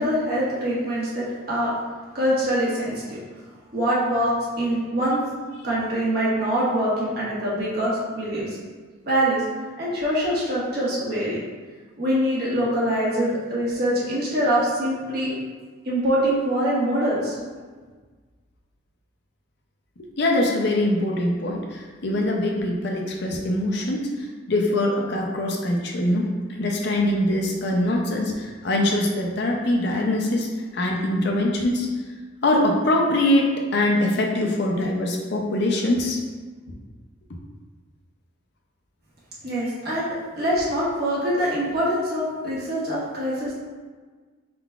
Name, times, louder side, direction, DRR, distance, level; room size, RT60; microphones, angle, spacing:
voice 1, 0.0-1.7 2.1-3.2 3.7-5.2 5.6-8.6 9.0-9.4 9.8-11.4 12.0-15.3 15.8-17.3 39.4-43.5, equal, 50° right, -7 dB, 1.3 m, -24 dB
voice 2, 20.2-31.9 32.4-36.2, left 1 dB, 55° left, 0 dB, 0.5 m, -23 dB
4.6 x 3.7 x 2.4 m, 1.5 s
head